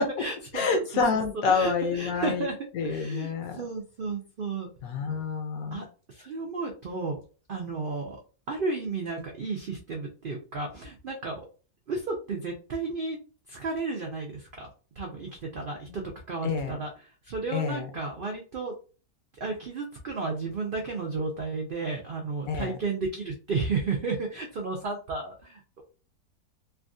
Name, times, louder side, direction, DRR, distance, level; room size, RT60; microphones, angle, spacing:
voice 1, 0.0-0.8 1.5-2.5 2.8-4.7 5.7-7.2 7.5-8.2 8.5-11.4 11.9-13.2 13.5-14.7 15.0-16.9 17.2-18.7 19.4-25.8, right 3 dB, 85° right, 1 dB, 0.4 m, -33 dB
voice 2, 0.5-2.5 2.7-3.6 4.8-5.9 16.4-16.8 17.5-17.9 22.5-22.8, left 5 dB, 70° left, 5 dB, 1.1 m, -28 dB
3.4 x 2.3 x 2.5 m, 0.36 s
omnidirectional pair, 1.7 m